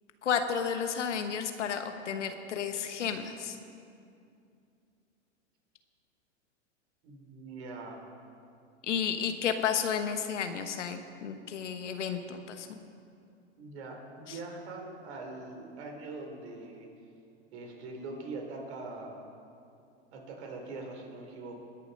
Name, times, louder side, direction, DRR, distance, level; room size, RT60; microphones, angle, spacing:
voice 1, 0.2-3.6 8.8-12.8, left 7 dB, 85° left, 8 dB, 1.2 m, -32 dB
voice 2, 7.0-8.1 13.6-16.9 17.5-19.3 20.1-21.6, right 3 dB, 65° right, 1 dB, 3.3 m, -42 dB
20.5 x 7.0 x 5.2 m, 2.5 s
hypercardioid pair, 110°, 35 cm